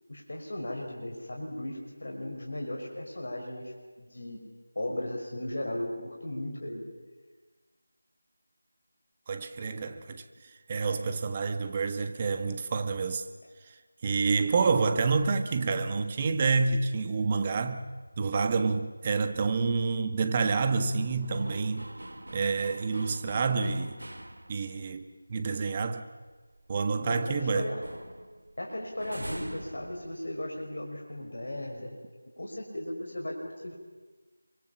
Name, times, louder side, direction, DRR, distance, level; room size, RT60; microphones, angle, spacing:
voice 1, 0.1-4.4 4.8-6.8 27.0-27.8 28.6-32.0 32.4-33.7, left 1 dB, 60° left, 5.8 m, -36 dB
voice 2, 9.3-10.2 10.7-13.2 14.0-17.8 18.2-21.9 22.3-23.9 24.5-26.1 26.7-27.7, right 4 dB, 25° right, 1.4 m, -28 dB
sound 1, 17.6-24.9 25.3-25.4 25.8-27.4 27.6-30.7, right 1 dB, 70° right, 3.1 m, -46 dB
27.0 x 24.5 x 7.4 m
figure-of-eight pair, 165°, 0 cm